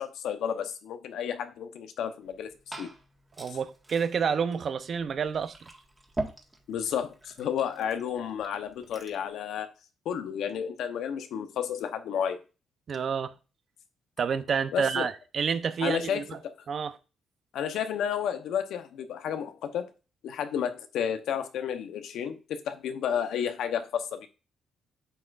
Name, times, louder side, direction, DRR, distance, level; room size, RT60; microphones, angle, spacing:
voice 1, 0.0-2.5 2.8-2.9 6.7-9.7 10.0-12.4 14.7-15.1 15.8-16.5 17.5-19.9 20.2-24.3, left 8 dB, 80° left, 1.0 m, -31 dB
Liquid, 2.2-9.3, right 2 dB, 15° right, 1.8 m, -43 dB
voice 2, 3.4-5.6 12.9-13.3 14.2-16.4 16.7-17.0, right 6 dB, 50° right, 0.8 m, -29 dB
9.3 x 6.3 x 2.6 m
cardioid pair, 90°, 0 cm